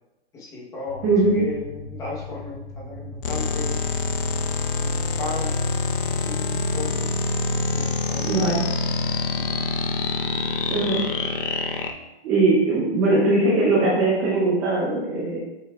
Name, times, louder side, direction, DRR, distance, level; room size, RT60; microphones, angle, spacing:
voice 1, 0.3-1.1 1.3-3.8 4.7-5.5 6.1-7.1 7.5-8.6 9.4-9.6, left 3 dB, 10° left, -4 dB, 0.9 m, -36 dB
sound 1, 0.9-10.3, right 3 dB, 70° right, 1.9 m, -37 dB
voice 2, 1.0-1.4 8.2-8.6 10.7-11.0 12.2-15.4, right 2 dB, 10° right, -5 dB, 0.5 m, -20 dB
sound 2, 3.2-11.9, left 4 dB, 55° left, 0.8 m, -26 dB
7.4 x 5.7 x 2.3 m, 1.0 s
hypercardioid pair, 160°, 32 cm